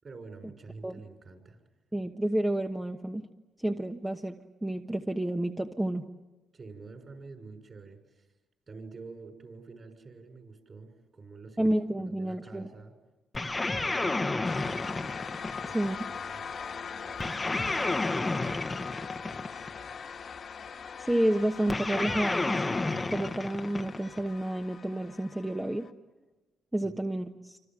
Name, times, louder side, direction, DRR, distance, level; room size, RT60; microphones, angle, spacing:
voice 1, 0.0-1.6 6.5-8.3 8.7-11.7 12.0-13.0 13.5-14.2 15.5-20.0 26.8-26.9, right 4 dB, 40° right, 5 dB, 6.3 m, -49 dB
voice 2, 1.9-3.2 3.6-6.0 11.6-12.7 15.7-16.0 21.0-22.6 23.1-25.9 26.7-27.6, right 1 dB, 10° right, 4 dB, 1.2 m, -30 dB
sound 1, 13.3-16.0 17.2-19.8 21.7-24.3, left 2 dB, 20° left, 1.2 m, -31 dB
sound 2, 14.4-25.9, left 6 dB, 50° left, 1.7 m, -41 dB
27.0 x 25.5 x 7.7 m, 1.1 s
cardioid pair, 90°, 0 cm